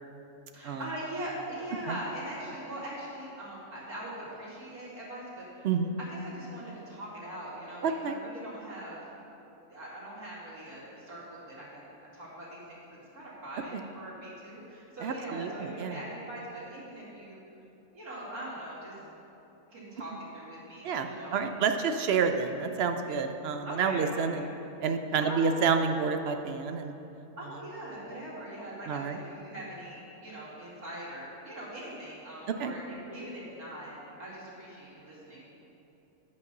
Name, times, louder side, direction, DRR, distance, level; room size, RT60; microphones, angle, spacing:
voice 1, 0.5-5.7 6.0-9.0 9.7-17.4 17.9-18.9 19.7-21.5 23.6-24.4 25.2-25.7 27.4-33.9 34.2-35.6, right 1 dB, 85° right, -8 dB, 2.8 m, -41 dB
voice 2, 5.6-6.0 7.8-8.2 13.7-13.8 15.0-16.0 20.8-24.5 24.8-26.9 28.9-29.2 32.6-32.7, right 5 dB, 65° right, 6 dB, 0.6 m, -29 dB
10.5 x 5.3 x 6.6 m, 3.0 s
omnidirectional pair, 1.6 m